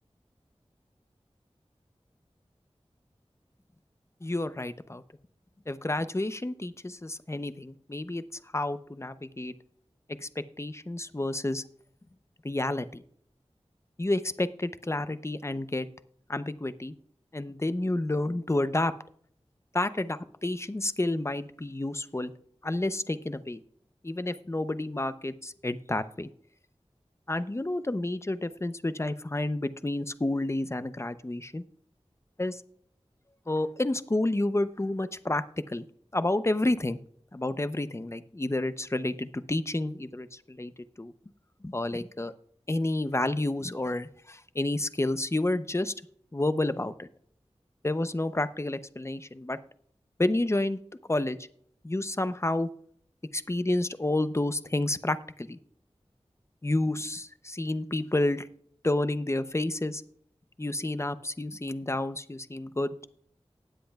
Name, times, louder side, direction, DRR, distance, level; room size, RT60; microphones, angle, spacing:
voice 1, 4.2-5.0 5.7-8.2 8.5-9.5 10.2-10.3 10.6-11.6 12.4-13.0 14.0-15.9 16.3-16.9 17.3-18.9 19.7-22.3 22.6-23.6 24.0-26.3 27.3-31.6 32.4-32.6 33.5-35.8 36.1-37.0 37.3-40.7 41.0-41.1 41.6-42.3 42.7-45.9 46.3-47.1 47.8-49.6 50.2-50.8 51.1-51.4 51.8-52.7 53.3-55.6 56.6-58.5 58.8-60.0 60.6-63.0, left 2 dB, 25° left, 13 dB, 0.6 m, -30 dB
19.0 x 7.6 x 2.3 m, 0.63 s
wide cardioid pair, 60°, 11 cm